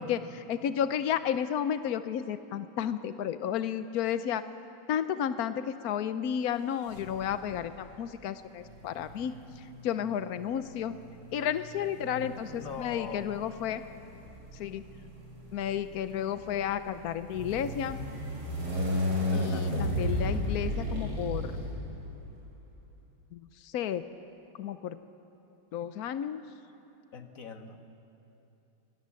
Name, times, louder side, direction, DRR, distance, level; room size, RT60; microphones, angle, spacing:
voice 1, 0.0-4.4 4.9-11.0 11.3-13.8 14.5-14.8 15.5-18.0 19.3-21.5 23.3-24.0 24.6-25.0 25.7-26.4, left 9 dB, 75° left, 11 dB, 0.8 m, -32 dB
sound 1, 6.9-7.6 8.6-22.3, left 1 dB, 70° right, 5.7 m, -34 dB
voice 2, 12.5-13.2 19.2-19.8 27.1-27.8, left 6 dB, 40° left, 6 dB, 1.7 m, -42 dB
27.5 x 24.5 x 7.7 m, 3.0 s
omnidirectional pair, 2.4 m